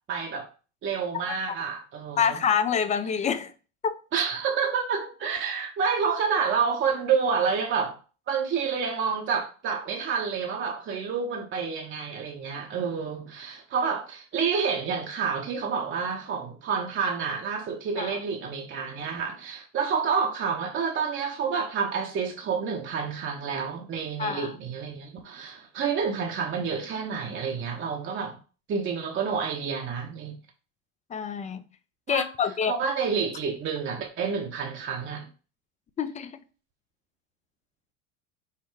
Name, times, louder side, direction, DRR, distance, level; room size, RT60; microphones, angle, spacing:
voice 1, 0.1-0.5 0.8-2.4 4.1-8.0 8.3-28.4 28.7-30.4 32.1-32.3 32.7-35.3, right 6 dB, 30° right, 0.8 m, -29 dB
voice 2, 2.2-3.5 3.8-4.0 18.0-18.2 24.2-24.5 31.1-31.6 32.1-32.7 36.0-36.4, left 7 dB, 20° left, 0.4 m, -26 dB
5.7 x 2.1 x 4.6 m
hypercardioid pair, 90°, 38 cm